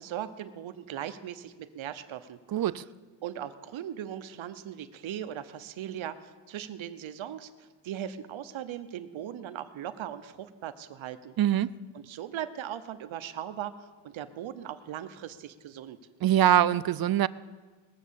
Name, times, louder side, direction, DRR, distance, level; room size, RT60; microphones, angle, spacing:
voice 1, 0.0-2.4 3.2-11.3 11.9-16.0, right 10 dB, 75° right, 10 dB, 0.9 m, -39 dB
voice 2, 2.5-2.8 11.4-11.7 16.2-17.3, right 11 dB, 50° right, 18 dB, 0.5 m, -23 dB
20.0 x 7.3 x 7.0 m, 1.4 s
cardioid pair, 90°, 47 cm